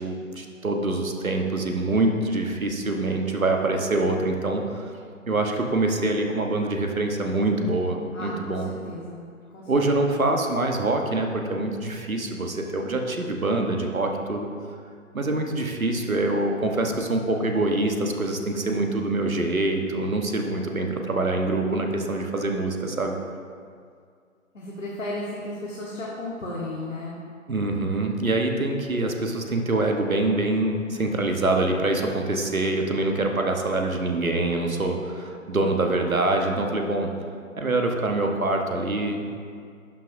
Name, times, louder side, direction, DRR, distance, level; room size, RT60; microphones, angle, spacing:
voice 1, 0.0-4.9 5.3-8.7 9.7-14.5 15.1-23.2 27.5-37.1 37.6-39.3, right 2 dB, 80° right, 3 dB, 1.2 m, -25 dB
voice 2, 8.1-9.2 9.5-9.7 10.0-10.3 24.5-27.2, left 2 dB, 65° left, -5 dB, 1.5 m, -34 dB
11.5 x 6.1 x 2.7 m, 2.1 s
figure-of-eight pair, 145°, 41 cm